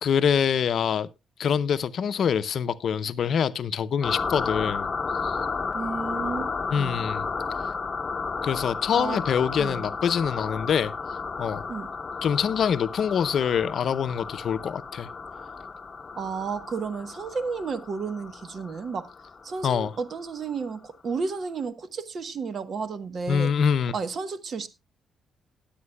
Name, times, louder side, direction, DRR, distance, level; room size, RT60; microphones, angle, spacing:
voice 1, 0.0-1.1 1.4-4.9 5.2-5.4 6.7-7.3 8.4-10.9 11.4-11.6 12.2-15.1 19.6-19.9 23.3-23.9, left 7 dB, 60° left, 0.6 m, -25 dB
sound 1, 4.0-20.3, left 4 dB, 30° left, 0.9 m, -33 dB
voice 2, 5.7-7.0 8.9-9.2 9.6-9.9 11.7-11.9 16.1-19.1 19.4-23.5 23.9-24.7, right 5 dB, 50° right, 1.1 m, -32 dB
19.0 x 8.5 x 2.3 m
cardioid pair, 90°, 0 cm